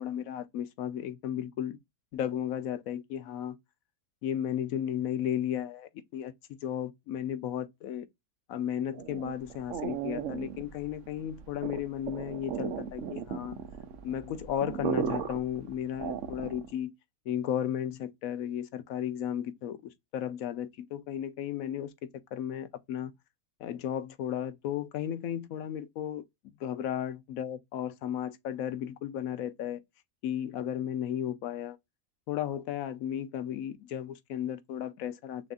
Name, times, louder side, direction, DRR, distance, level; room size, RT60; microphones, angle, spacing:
voice 1, 0.0-1.8 2.1-3.6 4.2-6.3 6.6-8.1 8.5-13.6 14.0-16.9 17.3-21.9 22.3-23.1 23.6-26.2 26.6-29.8 30.2-31.8 32.3-35.5, left 10 dB, 85° left, 1.1 m, -34 dB
sound 1, 8.9-16.8, right 8 dB, 70° right, 1.0 m, -36 dB
6.2 x 2.5 x 2.4 m
omnidirectional pair, 1.4 m